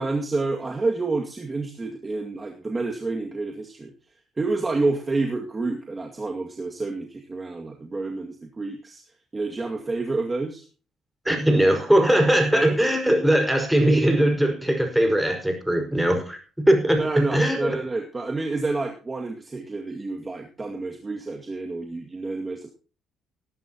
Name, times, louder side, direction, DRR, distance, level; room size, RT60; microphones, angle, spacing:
voice 1, 0.0-3.9 4.4-9.0 9.3-10.6 12.5-12.8 17.0-22.7, right 3 dB, 25° right, 2 dB, 2.2 m, -29 dB
voice 2, 11.2-17.8, right 1 dB, 5° right, 4 dB, 5.1 m, -20 dB
19.0 x 11.0 x 3.0 m, 0.36 s
cardioid pair, 85°, 0 cm